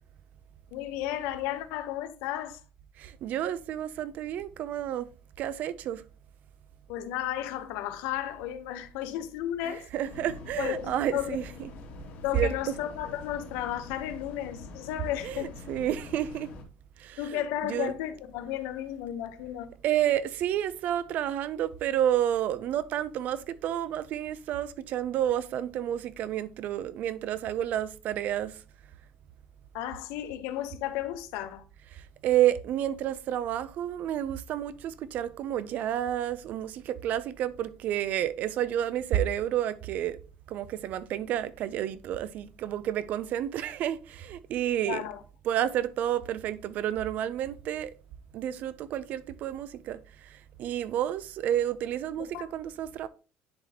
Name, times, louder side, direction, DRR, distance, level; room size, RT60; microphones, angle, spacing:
voice 1, 0.7-2.6 6.9-9.9 10.6-11.4 12.2-15.5 17.2-19.7 29.7-31.6 44.9-45.2 52.3-52.5, left 12 dB, 85° left, 0.9 m, -33 dB
voice 2, 3.0-5.1 5.4-6.0 9.6-11.4 12.3-12.5 15.2-16.5 17.0-17.9 19.8-28.6 31.9-40.2 40.5-45.0 45.5-47.9 48.3-53.1, right 11 dB, 50° right, 0.5 m, -30 dB
sound 1, 10.0-16.6, left 3 dB, 60° left, 2.1 m, -45 dB
10.5 x 4.0 x 2.9 m
cardioid pair, 160°, 4 cm